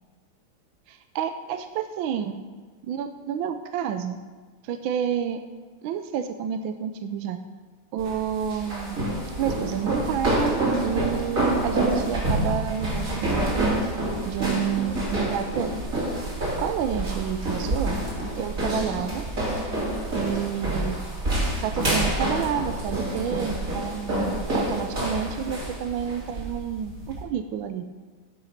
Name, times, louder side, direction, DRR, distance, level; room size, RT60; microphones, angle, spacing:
voice 1, 0.9-2.4 2.9-4.2 4.6-5.4 5.8-7.4 7.9-9.0 9.4-13.8 14.2-15.7 16.6-18.0 18.4-19.2 20.1-21.0 21.6-27.8, right 8 dB, 75° right, 8 dB, 1.3 m, -29 dB
sound 1, 8.0-27.2, right 1 dB, 40° right, 3.0 m, -27 dB
13.0 x 5.9 x 5.8 m, 1.4 s
omnidirectional pair, 2.3 m